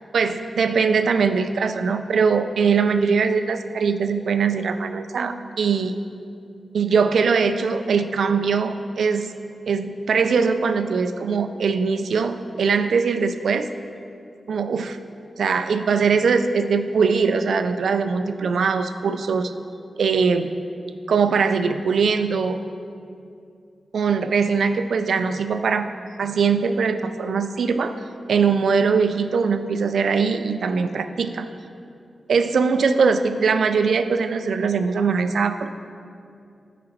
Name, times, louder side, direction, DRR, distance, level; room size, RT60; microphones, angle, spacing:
voice 1, 0.1-6.0 6.7-9.3 9.7-13.7 14.5-15.0 15.4-19.5 20.0-20.6 21.1-22.6 23.9-25.9 26.2-28.0 28.3-31.5 32.3-35.7, right 5 dB, 85° right, 9 dB, 0.4 m, -21 dB
12.5 x 5.0 x 4.5 m, 2.5 s
wide cardioid pair, 125°, 0 cm